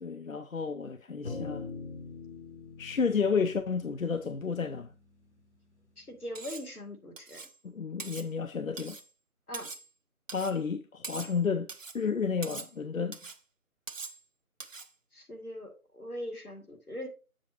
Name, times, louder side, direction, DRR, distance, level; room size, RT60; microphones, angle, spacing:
voice 1, 0.0-1.7 2.8-4.9 7.6-9.0 10.3-11.7 11.9-13.2, left 5 dB, 65° left, 0.5 m, -31 dB
sound 1, 1.2-5.8, left 4 dB, 50° left, 1.0 m, -43 dB
voice 2, 6.0-7.4 9.5-9.7 15.1-17.1, left 1 dB, 85° left, 2.2 m, -41 dB
Cutlery silverware, 6.4-6.7 7.2-7.6 8.0-8.3 8.8-9.1 9.5-9.9 10.3-10.6 11.0-11.4 11.7-12.0 12.4-12.7 13.1-13.4 13.9-14.2 14.6-14.9, right 4 dB, 60° right, 0.6 m, -43 dB
7.4 x 6.3 x 2.9 m
figure-of-eight pair, 170°, 44 cm